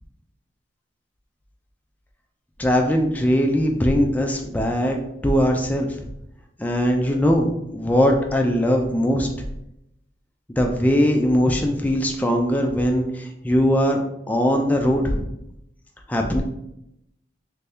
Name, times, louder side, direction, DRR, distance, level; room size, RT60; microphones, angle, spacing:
voice 1, 2.6-5.0 5.2-6.1 6.6-9.5 10.5-14.0 14.3-15.3 16.1-16.4, equal, 10° left, 2 dB, 0.3 m, -20 dB
3.2 x 2.7 x 3.4 m, 0.82 s
head